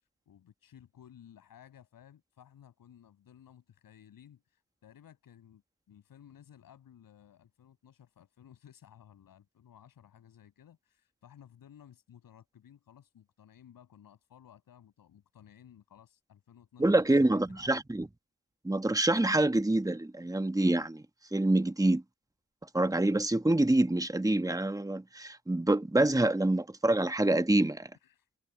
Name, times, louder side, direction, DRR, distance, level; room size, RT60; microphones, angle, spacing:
voice 1, 0.3-5.6 5.9-17.8 28.0-28.3, left 9 dB, 85° left, 7.5 m, -57 dB
voice 2, 16.8-18.1 18.6-21.0 21.3-22.0 22.7-27.9, right 2 dB, 10° right, 1.4 m, -26 dB
supercardioid pair, 45°, 33 cm